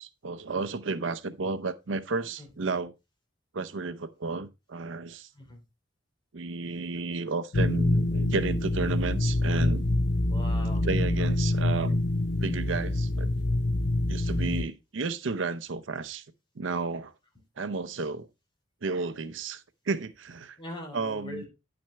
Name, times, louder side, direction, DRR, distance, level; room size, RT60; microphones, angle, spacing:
voice 1, 0.0-2.9 3.5-5.3 6.3-9.9 10.8-12.0 12.4-13.3 14.1-16.2 16.6-17.1 17.6-18.3 18.8-20.6 20.9-21.4, right 3 dB, 85° right, 0.7 m, -32 dB
sound 1, 7.5-14.6, left 1 dB, 60° left, 0.6 m, -26 dB
voice 2, 10.3-10.8 20.6-21.5, left 1 dB, 25° left, 3.8 m, -40 dB
10.0 x 6.0 x 3.3 m
head